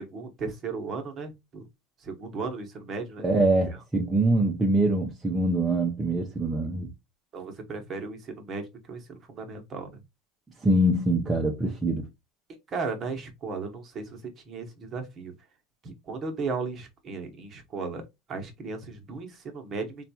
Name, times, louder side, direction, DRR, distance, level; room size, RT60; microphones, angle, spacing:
voice 1, 0.0-1.7 2.0-3.8 7.3-10.0 12.7-15.3 15.8-18.0 18.3-20.0, right 4 dB, 30° right, 1.0 m, -36 dB
voice 2, 3.2-6.9 10.6-12.1, right 1 dB, 15° right, 0.6 m, -24 dB
4.0 x 2.3 x 2.7 m
supercardioid pair, 135°, 0 cm